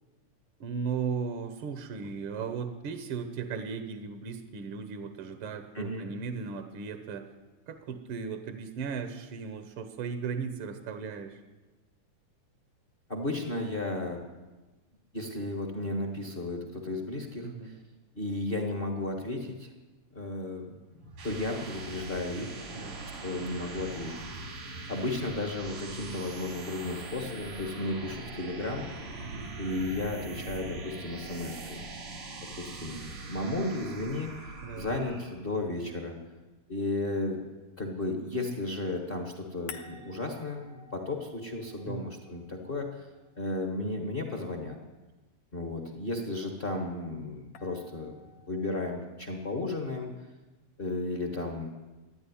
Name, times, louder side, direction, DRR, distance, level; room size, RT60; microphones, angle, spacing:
voice 1, 0.6-7.3 7.7-11.4 17.4-17.7 22.7-23.0 29.2-29.5 34.6-34.9 41.9-42.1, right 6 dB, 65° right, 8 dB, 1.3 m, -36 dB
voice 2, 5.7-6.1 13.1-14.2 15.1-17.8 18.1-19.7 20.1-20.7 21.2-22.6 23.2-24.6 24.9-28.8 29.6-31.9 32.6-36.2 36.7-37.4 37.8-43.1 43.4-44.8 45.5-48.1 48.5-50.1 50.8-51.7, left 2 dB, 35° left, 3 dB, 0.9 m, -34 dB
sound 1, 20.9-35.4, right 3 dB, 90° right, 4.7 m, -42 dB
sound 2, 31.2-36.2 39.7-43.8 47.6-48.8, left 3 dB, 70° left, 2.3 m, -55 dB
14.0 x 10.0 x 9.9 m, 1.2 s
omnidirectional pair, 3.7 m